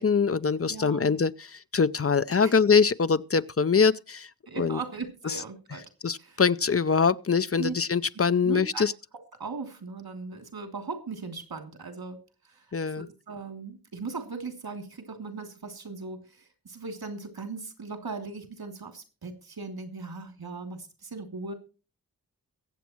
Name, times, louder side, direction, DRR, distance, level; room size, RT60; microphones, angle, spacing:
voice 1, 0.0-4.3 4.6-4.8 5.3-5.4 6.0-8.9 12.7-13.1, left 5 dB, 40° left, 0.6 m, -23 dB
voice 2, 0.7-1.2 2.4-2.5 4.5-5.9 6.2-6.4 7.6-7.7 8.1-8.9 9.4-12.2 12.5-12.6 13.0-21.5, right 4 dB, 85° right, 3.1 m, -38 dB
22.5 x 8.2 x 3.1 m
wide cardioid pair, 75°, 36 cm